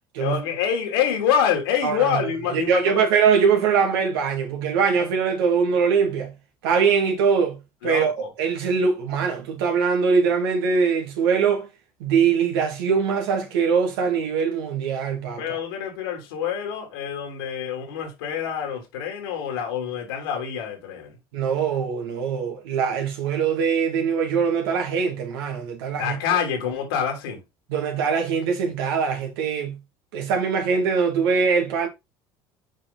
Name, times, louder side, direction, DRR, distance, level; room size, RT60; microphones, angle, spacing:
voice 1, 0.2-3.1 7.8-8.3 15.4-21.2 26.0-27.4, left 8 dB, 90° left, 3.1 m, -26 dB
voice 2, 1.8-6.3 6.6-7.6 7.8-11.7 12.0-15.4 21.3-26.2 27.7-29.8 30.1-31.9, right 6 dB, 85° right, 2.1 m, -22 dB
7.4 x 4.9 x 3.9 m
supercardioid pair, 85°, 12 cm